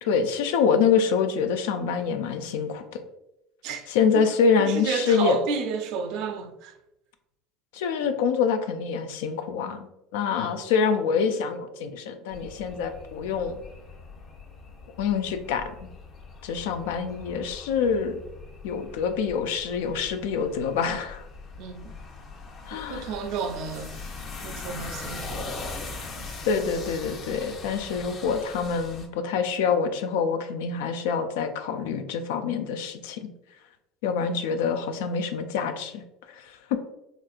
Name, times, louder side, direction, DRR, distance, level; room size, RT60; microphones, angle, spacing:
voice 1, 0.0-3.0 3.9-5.4 7.7-9.9 10.1-13.6 15.0-15.7 16.4-18.2 18.6-21.2 22.7-23.1 26.5-33.3 34.0-36.0 36.3-36.8, left 6 dB, 85° left, 0.3 m, -26 dB
voice 2, 4.6-6.7 10.3-10.6 21.6-22.0 22.7-24.0 24.4-25.5, right 5 dB, 65° right, 0.4 m, -31 dB
sound 1, 12.3-29.1, left 3 dB, 45° left, 0.7 m, -41 dB
4.2 x 2.5 x 2.4 m
supercardioid pair, 100°, 0 cm